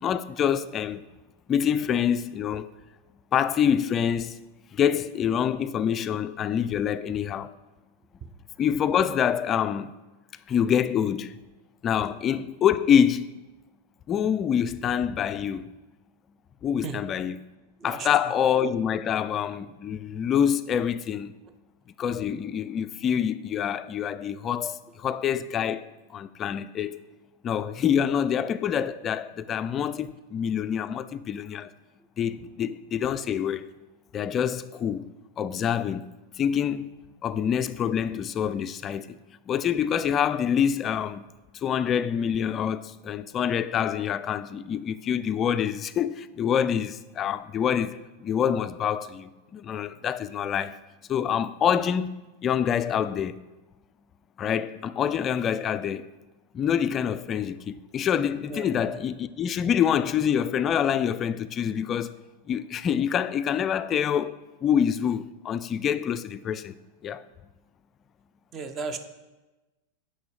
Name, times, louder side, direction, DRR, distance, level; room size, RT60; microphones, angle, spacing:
voice 1, 0.0-1.1 1.5-2.7 3.3-4.4 4.7-7.5 8.6-9.9 10.5-11.4 11.8-13.3 14.1-15.6 16.6-17.4 17.8-21.3 22.0-27.0 27.4-31.7 32.2-33.6 34.1-36.1 36.4-36.9 37.2-39.2 39.5-41.3 41.6-50.8 51.1-52.1 52.4-53.4 54.4-56.1 56.5-62.1 62.5-67.2, left 8 dB, 30° left, 0.3 m, -26 dB
voice 2, 58.5-59.0 68.5-69.0, right 4 dB, 30° right, 0.7 m, -35 dB
6.7 x 5.6 x 6.3 m
figure-of-eight pair, 90°, 0 cm